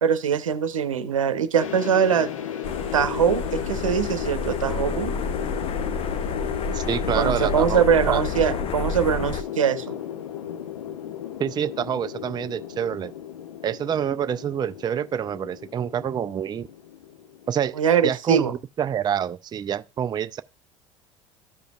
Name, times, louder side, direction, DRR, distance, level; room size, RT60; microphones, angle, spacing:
voice 1, 0.0-2.3 2.9-5.1 7.1-9.9 17.8-18.5, right 7 dB, 85° right, 0.7 m, -22 dB
sound 1, 1.6-17.7, left 9 dB, 80° left, 0.7 m, -34 dB
sound 2, 2.6-9.4, left 4 dB, 35° left, 0.6 m, -30 dB
voice 2, 6.7-8.2 11.4-13.1 13.6-16.7 17.5-18.5 18.8-20.4, right 9 dB, 25° right, 0.4 m, -27 dB
14.0 x 5.1 x 2.3 m
hypercardioid pair, 70°, 16 cm